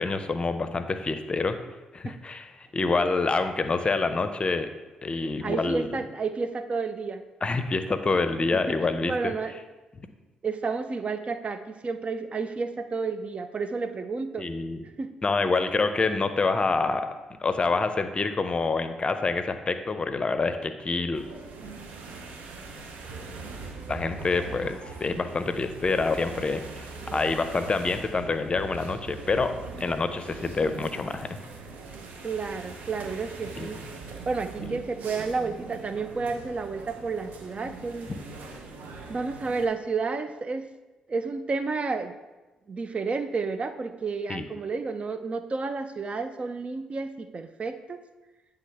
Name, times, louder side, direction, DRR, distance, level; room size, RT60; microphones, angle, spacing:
voice 1, 0.0-1.6 1.9-4.7 5.0-5.9 7.4-9.3 14.4-14.9 15.2-17.1 17.4-21.2 23.9-31.4 33.6-33.7 34.6-34.8 44.3-44.5, left 3 dB, 35° left, 9 dB, 0.6 m, -27 dB
voice 2, 5.4-7.2 8.5-8.8 9.0-9.5 10.4-14.5 15.0-15.1 32.2-33.8 34.3-38.1 39.1-40.7 41.1-42.1 42.7-48.0, right 4 dB, 40° right, 10 dB, 0.5 m, -31 dB
sound 1, 21.1-39.7, right 4 dB, 65° right, 0.8 m, -41 dB
9.1 x 3.5 x 3.4 m, 1.1 s
hypercardioid pair, 45°, 3 cm